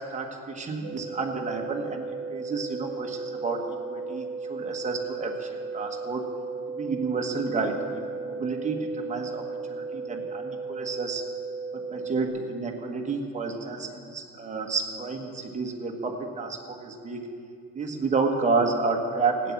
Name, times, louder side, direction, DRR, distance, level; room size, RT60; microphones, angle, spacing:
voice 1, 0.1-5.5 5.7-6.3 6.7-7.8 8.2-11.2 11.7-17.3 17.7-19.5, right 4 dB, 25° right, 2 dB, 1.4 m, -30 dB
sound 1, 0.8-12.3, right 4 dB, 40° right, 1.8 m, -35 dB
15.5 x 9.5 x 7.2 m, 2.5 s
cardioid pair, 175°, 31 cm